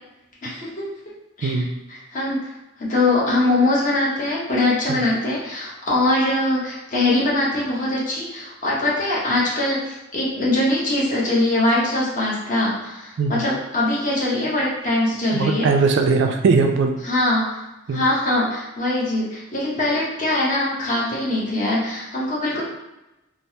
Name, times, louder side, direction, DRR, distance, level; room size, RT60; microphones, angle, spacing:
voice 1, 0.4-0.9 1.4-1.6 1.9-2.5 2.8-15.7 17.0-17.6 17.9-22.6, left 2 dB, 40° left, -6 dB, 0.8 m, -22 dB
voice 2, 15.3-17.0 17.9-18.0, right 4 dB, 60° right, 4 dB, 0.3 m, -19 dB
3.2 x 2.0 x 2.7 m, 0.96 s
head